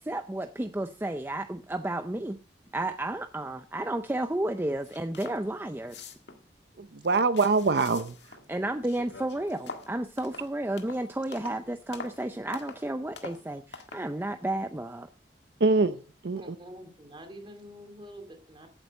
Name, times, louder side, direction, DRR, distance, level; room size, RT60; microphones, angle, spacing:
voice 1, 0.0-2.4 2.7-6.0 8.5-15.1, right 1 dB, 10° right, 8 dB, 0.5 m, -32 dB
sound 1, 4.5-4.6 4.8-5.4 5.7-6.5 6.9-8.5 8.8-11.6 11.9-12.2 12.5-12.9 13.2-13.4 13.7-14.1, left 4 dB, 75° left, 1.7 m, -44 dB
voice 2, 6.8-8.2 15.6-16.6, right 3 dB, 65° right, 11 dB, 0.6 m, -24 dB
voice 3, 16.3-18.7, equal, 30° right, 6 dB, 2.5 m, -46 dB
14.0 x 8.1 x 5.3 m, 0.38 s
head